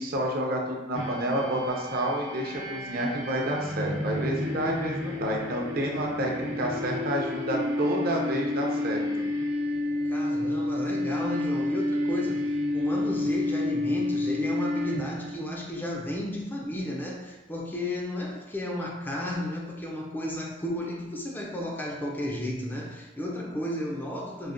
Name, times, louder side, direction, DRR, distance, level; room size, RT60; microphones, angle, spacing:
voice 1, 0.0-9.0, right 1 dB, 50° right, 0 dB, 0.5 m, -29 dB
sound 1, 0.9-15.4, left 1 dB, 85° right, 0.9 m, -30 dB
voice 2, 10.0-24.5, left 1 dB, 10° left, -2 dB, 0.3 m, -33 dB
4.0 x 2.1 x 2.5 m, 1.1 s
head